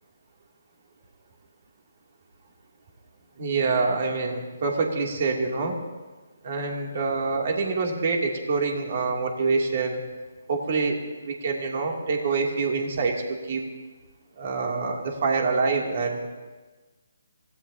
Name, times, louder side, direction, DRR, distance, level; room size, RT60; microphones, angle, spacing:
voice 1, 3.4-5.8 6.4-10.0 10.5-11.0 11.2-13.6 14.4-16.3, right 4 dB, 50° right, 1 dB, 2.8 m, -26 dB
26.5 x 17.0 x 2.9 m, 1.3 s
figure-of-eight pair, 145°, 0 cm